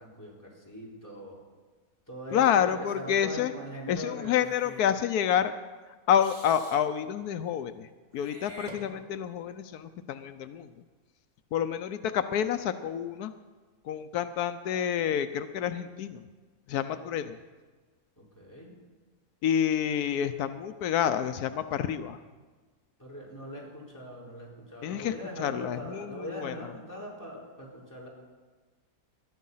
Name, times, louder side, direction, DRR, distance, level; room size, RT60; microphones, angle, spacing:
voice 1, 0.0-1.4 2.1-4.8 18.2-18.7 23.0-28.1, equal, 10° left, -3 dB, 4.3 m, -42 dB
voice 2, 2.3-3.5 3.9-5.5 6.1-7.9 8.1-10.7 11.5-13.3 13.9-16.3 16.7-17.4 19.4-22.2 24.8-25.1 25.4-26.5, left 9 dB, 85° left, 11 dB, 1.2 m, -28 dB
Meow / Hiss, 4.3-4.9 6.2-6.8 8.1-9.4, right 1 dB, 30° right, 2.4 m, -48 dB
20.0 x 13.0 x 5.6 m, 1.4 s
omnidirectional pair, 1.6 m